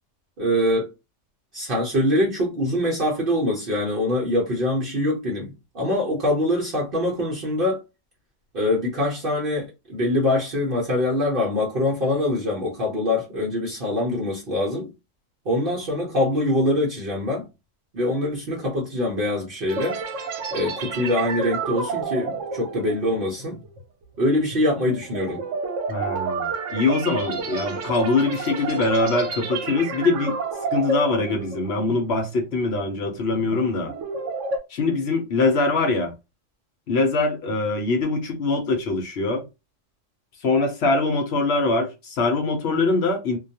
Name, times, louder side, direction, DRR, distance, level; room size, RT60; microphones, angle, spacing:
voice 1, 0.4-0.9 1.5-7.8 8.5-14.9 15.5-17.4 17.9-20.0 20.5-23.6 24.2-25.4, left 1 dB, 55° right, 0.8 m, -24 dB
sound 1, 19.7-32.2 32.5-32.8 33.3-34.6, right 4 dB, 80° right, 1.0 m, -30 dB
voice 2, 25.9-30.4 30.7-33.9 34.7-36.1 36.9-39.4 40.4-43.4, left 3 dB, 65° left, 0.9 m, -23 dB
2.3 x 2.2 x 2.7 m
omnidirectional pair, 1.3 m